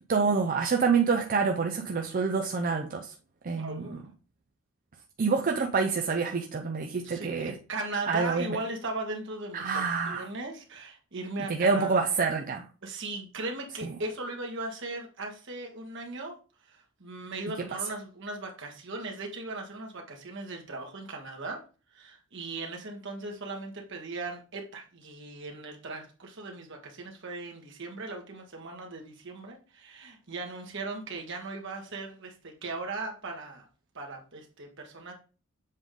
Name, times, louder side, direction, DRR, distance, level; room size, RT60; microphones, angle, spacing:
voice 1, 0.1-3.1 3.4-4.0 5.2-7.5 8.1-8.6 9.5-10.3 11.5-12.7, right 5 dB, 40° right, 0.5 m, -27 dB
voice 2, 3.6-4.1 7.0-12.1 12.8-16.4 16.6-21.6 21.9-33.7 33.9-35.1, right 2 dB, 60° right, 1.5 m, -38 dB
7.3 x 3.5 x 3.7 m
head